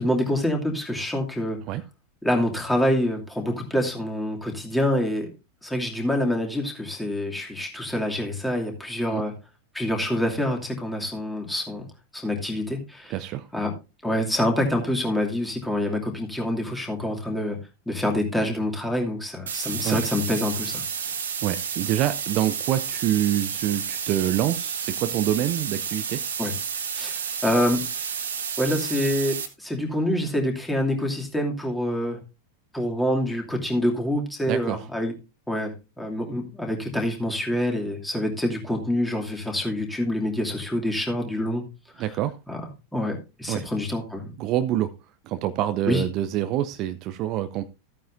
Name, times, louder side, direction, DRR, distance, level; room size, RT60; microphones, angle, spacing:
voice 1, 0.0-1.6 2.2-5.3 5.6-9.3 9.7-11.9 12.1-13.1 13.5-13.7 14.0-17.6 17.9-20.8 26.4-26.5 26.9-28.0 28.6-32.2 32.7-35.1 35.5-41.6 42.5-42.6 42.9-44.3 45.9-46.0, left 1 dB, 5° left, 1 dB, 2.6 m, -26 dB
voice 2, 13.1-13.5 19.8-20.0 21.0-21.2 21.4-26.2 34.5-34.9 42.0-42.3 43.5-43.7 44.4-44.9 45.3-47.6, right 12 dB, 40° right, 11 dB, 0.6 m, -26 dB
sound 1, 19.5-29.5, right 7 dB, 65° right, 1.7 m, -31 dB
14.0 x 9.1 x 2.6 m, 0.28 s
figure-of-eight pair, 90°, 0 cm